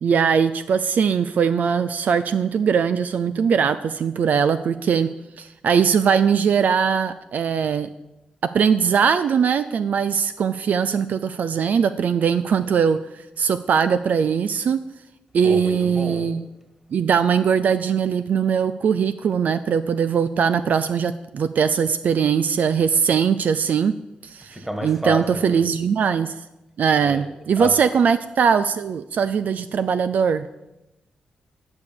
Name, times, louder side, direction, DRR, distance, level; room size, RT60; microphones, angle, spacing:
voice 1, 0.0-5.1 5.4-7.9 8.5-13.0 13.4-14.8 15.3-16.4 16.9-23.9 24.2-26.4 26.8-30.5, right 7 dB, 65° right, 11 dB, 0.4 m, -20 dB
voice 2, 15.4-16.3 24.5-25.6 27.0-27.3 27.6-27.7, equal, 10° right, 4 dB, 2.0 m, -30 dB
10.5 x 5.0 x 6.9 m, 0.97 s
cardioid pair, 60°, 3 cm